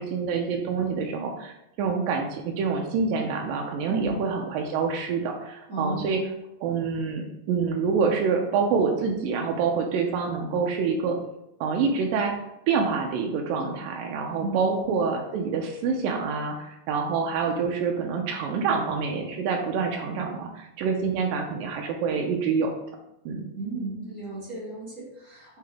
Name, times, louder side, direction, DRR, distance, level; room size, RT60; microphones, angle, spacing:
voice 1, 0.0-6.2 6.6-11.1 11.6-12.3 12.7-22.7 23.3-23.5, right 5 dB, 85° right, 2 dB, 2.4 m, -26 dB
voice 2, 3.9-4.2 5.7-6.1 14.4-14.9 23.5-25.6, right 3 dB, 40° right, -7 dB, 1.2 m, -33 dB
6.7 x 4.1 x 3.4 m, 0.85 s
omnidirectional pair, 3.9 m